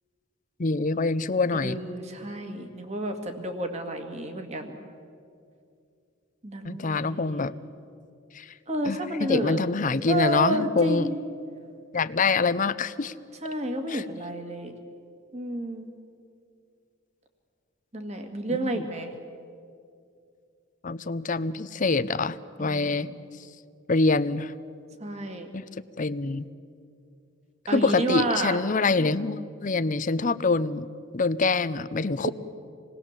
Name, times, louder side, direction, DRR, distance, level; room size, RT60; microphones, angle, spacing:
voice 1, 0.6-1.8 6.6-7.6 8.3-8.5 8.9-11.1 11.9-13.1 13.9-14.0 18.5-18.8 20.8-23.2 23.9-24.5 25.5-25.6 26.0-26.5 27.7-30.9 31.1-32.3, left 3 dB, 40° left, 15 dB, 0.7 m, -25 dB
voice 2, 1.6-4.8 6.4-7.5 8.7-9.6 10.1-11.2 13.4-14.7 15.3-15.9 17.9-19.1 22.6-23.1 25.0-25.5 27.7-28.6 32.2-32.3, right 1 dB, 35° right, 5 dB, 2.1 m, -30 dB
27.5 x 20.0 x 7.4 m, 2.4 s
head